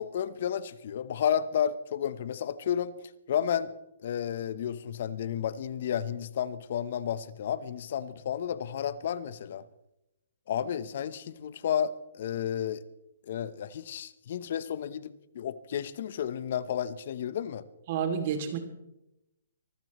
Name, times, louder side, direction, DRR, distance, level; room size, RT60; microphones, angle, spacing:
voice 1, 0.0-3.0 3.3-3.7 4.0-9.6 10.5-12.8 13.3-17.6, left 9 dB, 55° left, 16 dB, 0.9 m, -32 dB
voice 2, 17.9-18.6, right 7 dB, 45° right, 6 dB, 2.7 m, -29 dB
24.0 x 15.0 x 3.1 m, 0.87 s
hypercardioid pair, 145°, 0 cm